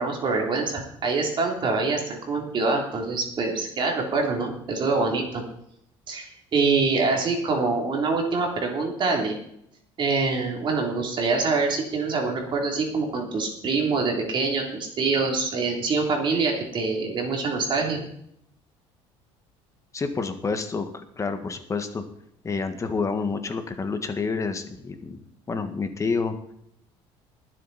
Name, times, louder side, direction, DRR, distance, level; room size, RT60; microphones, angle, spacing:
voice 1, 0.0-5.4 6.1-9.3 10.0-18.0, right 4 dB, 45° right, 1 dB, 3.3 m, -25 dB
voice 2, 19.9-22.0 22.4-25.2 25.5-26.3, left 4 dB, 25° left, 7 dB, 1.6 m, -28 dB
21.5 x 7.8 x 4.2 m, 0.72 s
cardioid pair, 110°, 12 cm